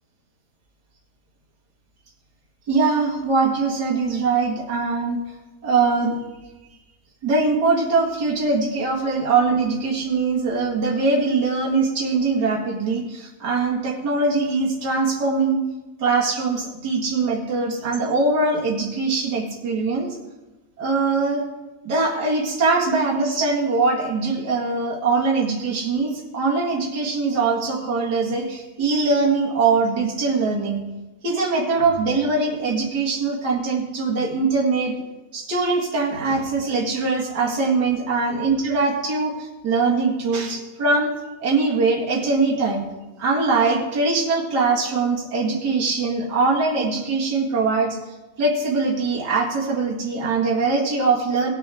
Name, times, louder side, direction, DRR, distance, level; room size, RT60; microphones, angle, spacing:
voice 1, 2.7-5.2 5.6-6.2 7.2-15.6 16.0-20.1 20.8-21.4 21.8-30.8 31.2-34.9 35.3-41.1 41.4-42.8 43.2-48.0 48.4-51.5, right 3 dB, 85° right, -3 dB, 2.4 m, -22 dB
19.5 x 7.1 x 3.5 m, 1.1 s
omnidirectional pair, 1.7 m